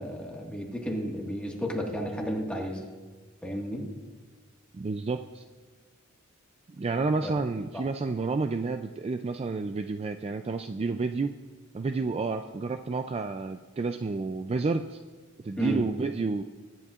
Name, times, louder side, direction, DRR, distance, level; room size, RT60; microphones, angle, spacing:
voice 1, 0.0-2.8 3.4-3.8 7.2-7.3 7.7-7.8 15.6-15.8, equal, 5° left, -1 dB, 1.6 m, -32 dB
voice 2, 4.7-5.4 6.7-11.3 11.7-15.0 15.4-16.4, right 3 dB, 30° right, 8 dB, 0.3 m, -30 dB
23.0 x 11.0 x 2.4 m, 1.4 s
head